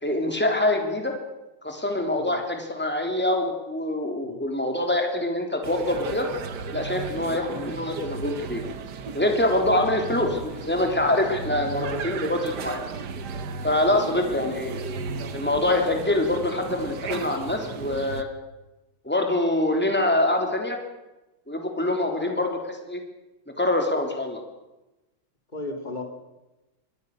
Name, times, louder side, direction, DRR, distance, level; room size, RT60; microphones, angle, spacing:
voice 1, 0.0-1.1 1.6-6.3 6.7-8.6 9.1-12.8 13.6-14.8 15.3-18.3 19.0-20.8 21.5-23.0 23.6-24.4, left 1 dB, 5° left, 3 dB, 3.4 m, -25 dB
sound 1, 5.6-18.2, right 5 dB, 60° right, 1.7 m, -35 dB
voice 2, 13.9-14.5 22.1-22.3 25.5-26.0, left 2 dB, 25° left, 4 dB, 3.3 m, -37 dB
23.0 x 19.5 x 6.7 m, 1.0 s
omnidirectional pair, 2.1 m